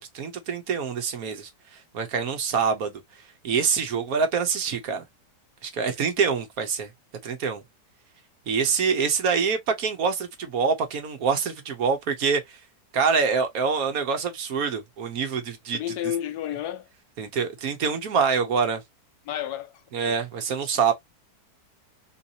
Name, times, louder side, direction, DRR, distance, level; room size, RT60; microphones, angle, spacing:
voice 1, 0.0-1.5 1.9-2.9 3.4-5.0 5.6-6.9 7.2-7.6 8.5-12.6 12.9-15.8 17.2-18.8 19.9-20.9, right 5 dB, 65° right, 1.2 m, -25 dB
voice 2, 15.7-16.9 19.2-20.2 20.5-20.7, left 11 dB, 75° left, 1.1 m, -32 dB
3.8 x 2.7 x 2.7 m
omnidirectional pair, 1.8 m